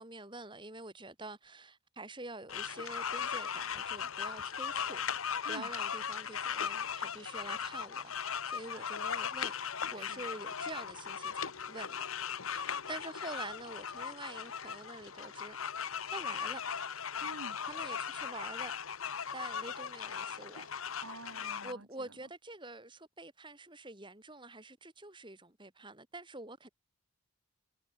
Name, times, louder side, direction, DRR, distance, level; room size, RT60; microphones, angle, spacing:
voice 1, 0.0-9.5 9.9-12.0 12.5-15.6 16.1-16.6 17.7-18.7 19.3-20.7 21.6-26.7, right 2 dB, 25° right, 4.9 m, -47 dB
sound 1, 2.5-21.7, left 7 dB, 85° left, 1.4 m, -38 dB
voice 2, 17.2-17.6 21.0-22.1, right 2 dB, 90° right, 5.0 m, -48 dB
head